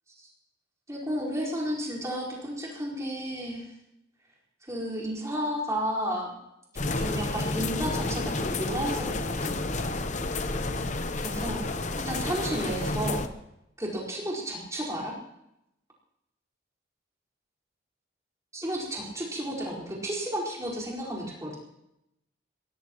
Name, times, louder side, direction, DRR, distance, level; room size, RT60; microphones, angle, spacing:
voice 1, 0.9-3.7 4.7-6.3 7.0-9.5 11.1-11.6 12.0-13.2 13.8-15.1 18.5-21.6, equal, 15° right, -5 dB, 4.7 m, -32 dB
sound 1, 6.8-13.3, left 2 dB, 40° left, 0.9 m, -30 dB
22.5 x 18.5 x 3.1 m, 0.84 s
head